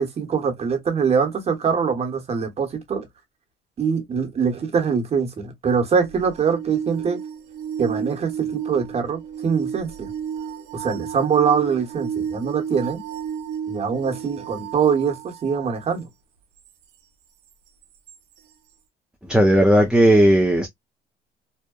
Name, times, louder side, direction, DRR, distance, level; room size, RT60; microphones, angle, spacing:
voice 1, 0.0-3.1 3.8-7.2 7.8-10.1 10.7-13.0 13.7-16.1, right 6 dB, 40° right, 1.0 m, -23 dB
sound 1, 6.0-15.8 18.1-18.2, right 8 dB, 90° right, 0.5 m, -32 dB
voice 2, 19.3-20.7, right 1 dB, 5° right, 0.5 m, -15 dB
2.8 x 2.1 x 2.2 m
cardioid pair, 110°, 17 cm